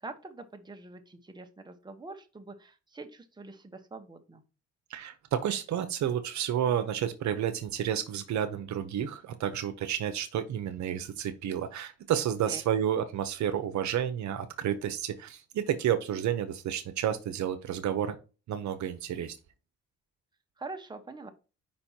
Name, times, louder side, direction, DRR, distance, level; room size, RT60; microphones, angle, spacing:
voice 1, 0.0-4.4 12.5-12.6 20.6-21.3, right 3 dB, 15° right, 1.1 m, -44 dB
voice 2, 4.9-18.2 18.5-19.3, right 9 dB, 70° right, 0.8 m, -31 dB
5.3 x 4.3 x 4.4 m
cardioid pair, 90°, 30 cm